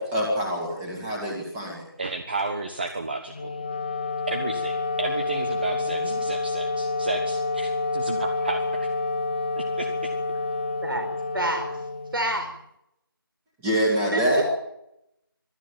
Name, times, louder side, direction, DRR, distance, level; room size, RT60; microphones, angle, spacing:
voice 1, 0.0-1.8 13.6-14.4, equal, 5° right, -1 dB, 2.4 m, -25 dB
voice 2, 2.0-3.5 4.3-8.9 9.6-10.1, right 3 dB, 25° right, 7 dB, 1.3 m, -32 dB
Wind instrument woodwind instrument, 3.3-12.6, left 3 dB, 25° left, 0.9 m, -28 dB
voice 3, 5.6-6.2 10.8-11.1 11.3-11.8 12.1-12.5 14.1-14.4, right 1 dB, 65° right, 5 dB, 4.5 m, -28 dB
24.0 x 12.5 x 9.1 m, 0.81 s
figure-of-eight pair, 170°, 12 cm